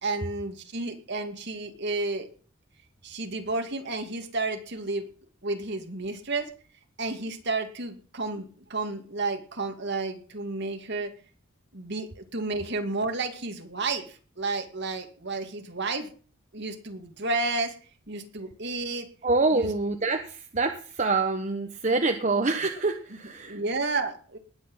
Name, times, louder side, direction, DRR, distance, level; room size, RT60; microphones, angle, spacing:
voice 1, 0.0-2.3 3.0-5.1 5.4-6.5 7.0-11.1 11.7-16.1 16.5-17.7 18.1-19.1 19.5-19.7 23.4-24.4, right 3 dB, 55° right, 5 dB, 2.4 m, -31 dB
voice 2, 19.2-23.6, right 3 dB, 35° right, 5 dB, 1.1 m, -26 dB
19.5 x 8.5 x 5.6 m, 0.41 s
head